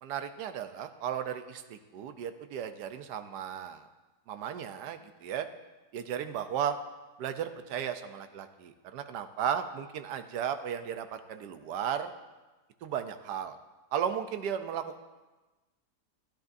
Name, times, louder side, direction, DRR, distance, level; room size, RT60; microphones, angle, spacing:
voice 1, 0.0-3.9 4.3-5.5 5.9-6.8 7.2-12.1 12.8-13.6 13.9-15.0, right 9 dB, 90° right, 9 dB, 1.3 m, -35 dB
15.5 x 10.5 x 2.6 m, 1.2 s
omnidirectional pair, 1.7 m